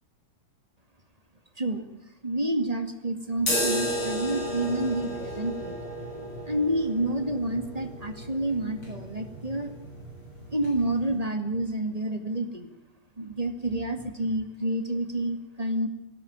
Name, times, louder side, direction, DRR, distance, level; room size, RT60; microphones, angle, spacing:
voice 1, 2.2-5.9 6.5-9.7 10.5-12.7 13.2-15.9, right 1 dB, 15° right, 7 dB, 1.6 m, -29 dB
sound 1, 3.4-11.2, equal, 40° left, 7.4 m, -34 dB
19.0 x 17.5 x 9.0 m, 0.92 s
omnidirectional pair, 3.5 m